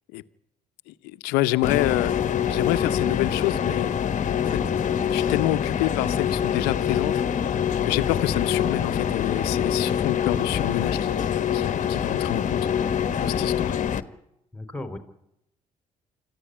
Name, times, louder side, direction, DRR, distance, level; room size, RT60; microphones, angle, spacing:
voice 1, 0.9-4.0 4.3-4.6 5.1-7.6 7.8-11.2 11.5-12.8 13.2-13.8, left 17 dB, 85° left, 0.9 m, -27 dB
sound 1, 1.6-14.0, left 8 dB, 50° left, 1.4 m, -25 dB
voice 2, 14.5-15.0, left 2 dB, 5° left, 4.0 m, -34 dB
26.0 x 14.5 x 10.0 m
supercardioid pair, 65°, 16 cm